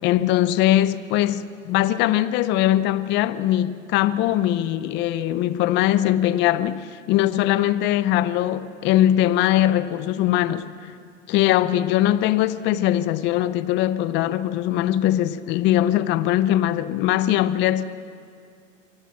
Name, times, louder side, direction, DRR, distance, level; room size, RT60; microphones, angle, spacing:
voice 1, 0.0-10.9 11.3-17.8, left 13 dB, 30° left, 0.6 m, -21 dB
25.0 x 15.5 x 7.4 m
hypercardioid pair, 120°, 39 cm